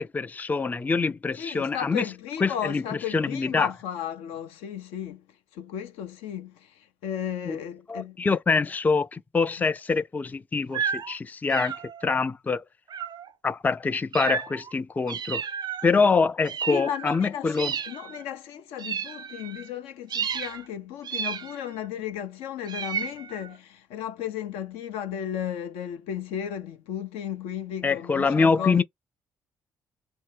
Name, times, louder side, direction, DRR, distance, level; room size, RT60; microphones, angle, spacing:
voice 1, 0.0-2.0 2.4-2.8 3.1-3.7 7.5-7.6 7.9-12.6 13.4-15.4 15.8-17.7 27.8-28.8, left 4 dB, 15° left, 0.3 m, -25 dB
voice 2, 1.4-5.2 5.5-8.2 16.7-28.8, left 9 dB, 65° left, 0.5 m, -34 dB
sound 1, 10.7-11.1 11.5-12.2 12.9-13.3 14.1-14.7 15.1-15.9 16.4-17.2 17.5-18.2 18.8-19.7 20.1-20.7 21.0-21.9 22.7-23.6, right 7 dB, 40° right, 0.5 m, -32 dB
2.7 x 2.7 x 3.3 m
figure-of-eight pair, 45°, 11 cm